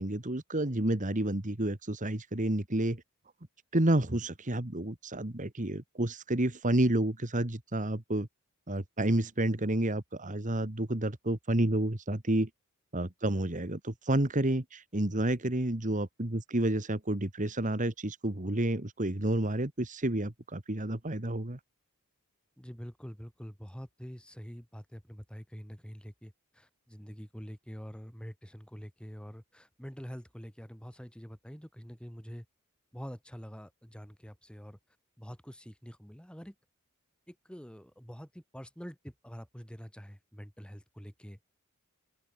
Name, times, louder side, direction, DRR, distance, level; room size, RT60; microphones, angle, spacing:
voice 1, 0.0-3.0 3.7-8.3 8.7-12.5 12.9-21.6, right 1 dB, 35° right, 1.9 m, -30 dB
voice 2, 22.6-32.5 32.9-34.8 35.2-36.5 37.3-41.4, equal, 5° left, 3.3 m, -46 dB
open air
head